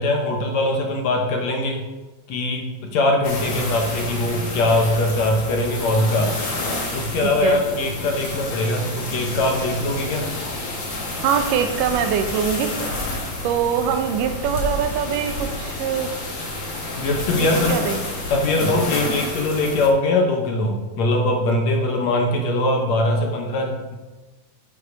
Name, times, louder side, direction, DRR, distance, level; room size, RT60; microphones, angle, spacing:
voice 1, 0.0-1.8 2.3-6.3 6.9-10.3 17.0-17.8 18.3-24.0, left 2 dB, 65° left, 2 dB, 2.0 m, -21 dB
sound 1, 3.2-19.9, left 2 dB, 50° left, 2.6 m, -29 dB
voice 2, 7.2-7.6 11.2-12.7 13.4-16.1 17.3-18.0 23.1-23.3, right 8 dB, 80° right, 7 dB, 2.3 m, -23 dB
9.6 x 5.7 x 5.1 m, 1.2 s
omnidirectional pair, 3.8 m